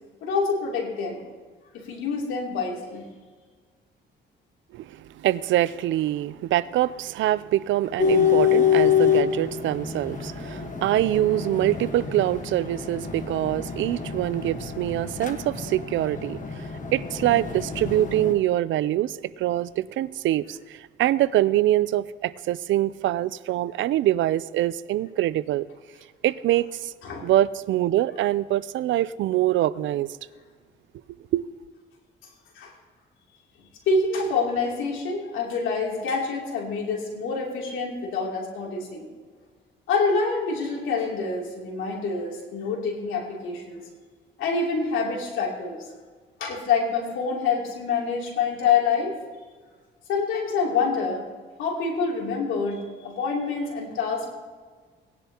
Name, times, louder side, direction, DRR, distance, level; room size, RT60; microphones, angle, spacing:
voice 1, 0.2-1.2 1.7-3.1 27.0-27.3 32.5-32.7 33.9-39.1 39.9-43.8 44.4-45.8 46.4-49.1 50.1-51.3 51.6-54.3, left 4 dB, 90° left, -2 dB, 3.0 m, -26 dB
voice 2, 4.7-25.7 26.2-26.9 27.2-30.1 31.3-31.4, right 14 dB, 75° right, 18 dB, 0.5 m, -24 dB
sound 1, 8.0-18.3, left 8 dB, 40° left, 1.3 m, -26 dB
18.0 x 10.5 x 2.9 m, 1.5 s
cardioid pair, 90°, 20 cm